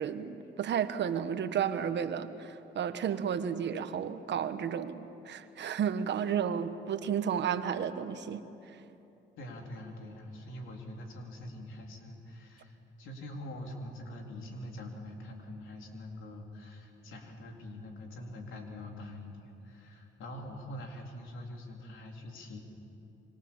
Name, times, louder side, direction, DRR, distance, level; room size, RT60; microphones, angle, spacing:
voice 1, 0.0-8.4, right 8 dB, 65° right, 10 dB, 1.3 m, -32 dB
voice 2, 9.4-22.6, left 1 dB, 80° left, 1 dB, 3.9 m, -44 dB
26.5 x 24.5 x 7.3 m, 2.9 s
cardioid pair, 90°, 20 cm